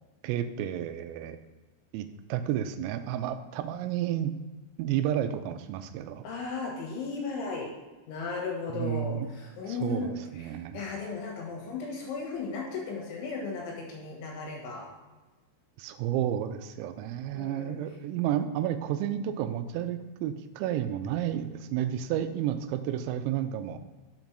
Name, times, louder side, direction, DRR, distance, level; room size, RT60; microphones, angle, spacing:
voice 1, 0.2-1.4 1.9-4.4 4.8-6.2 8.7-9.3 9.7-10.8 15.8-23.8, right 11 dB, 90° right, 10 dB, 3.3 m, -31 dB
voice 2, 6.2-7.7 8.1-10.2 10.7-14.9 17.3-17.8, left 4 dB, 70° left, -1 dB, 3.7 m, -35 dB
7.4 x 5.3 x 6.0 m, 1.2 s
omnidirectional pair, 6.0 m